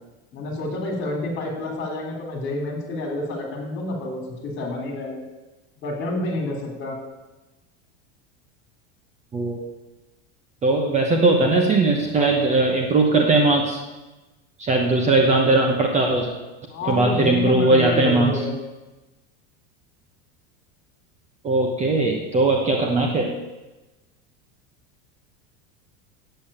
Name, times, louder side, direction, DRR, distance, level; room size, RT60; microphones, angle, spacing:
voice 1, 0.3-5.2 5.8-7.0 16.7-18.5, left 2 dB, 35° left, 2 dB, 3.3 m, -29 dB
voice 2, 9.3-9.6 10.6-13.8 14.6-16.3 16.8-18.4 21.4-23.3, right 2 dB, 20° right, 1 dB, 1.1 m, -19 dB
8.5 x 8.0 x 8.6 m, 1.1 s
supercardioid pair, 160°, 35 cm